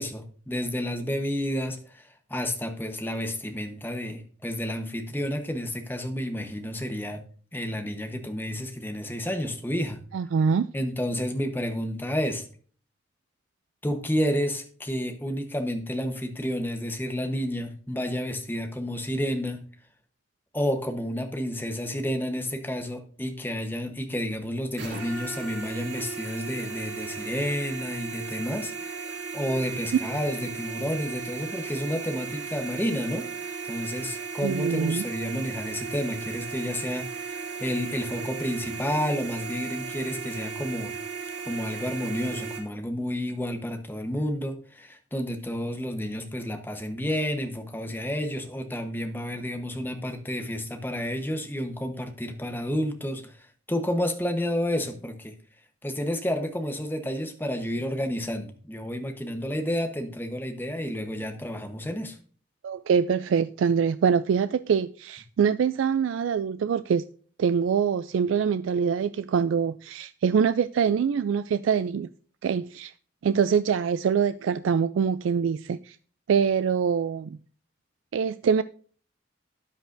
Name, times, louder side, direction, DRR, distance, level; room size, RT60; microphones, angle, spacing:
voice 1, 0.0-2.0 2.3-7.2 7.5-10.0 10.7-12.4 13.8-19.6 20.5-28.7 29.3-33.2 33.7-40.9 41.5-53.3 53.7-55.3 55.8-62.1, equal, 10° left, 1.0 m, -30 dB
voice 2, 10.1-10.7 34.4-35.0 62.6-67.1 67.4-72.1 72.4-72.9 73.2-76.0 76.3-77.4 78.1-78.6, right 6 dB, 80° right, 0.3 m, -24 dB
sound 1, 24.8-42.6, right 5 dB, 60° right, 2.9 m, -36 dB
13.0 x 9.1 x 2.6 m
head